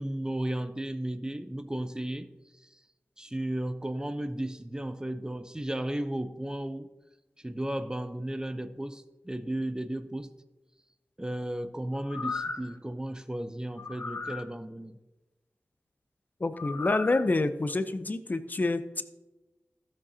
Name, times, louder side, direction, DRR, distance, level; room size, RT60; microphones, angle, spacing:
voice 1, 0.0-2.3 2.5-2.8 3.2-6.9 7.4-10.3 11.2-15.0, right 1 dB, 15° right, 11 dB, 0.6 m, -34 dB
sound 1, 12.0-12.7 13.8-14.4 16.5-17.2 17.7-17.8, left 4 dB, 65° left, 1.0 m, -36 dB
voice 2, 16.4-19.0, left 2 dB, 40° left, 10 dB, 0.6 m, -28 dB
16.0 x 7.5 x 2.8 m, 1.1 s
wide cardioid pair, 65°, 5 cm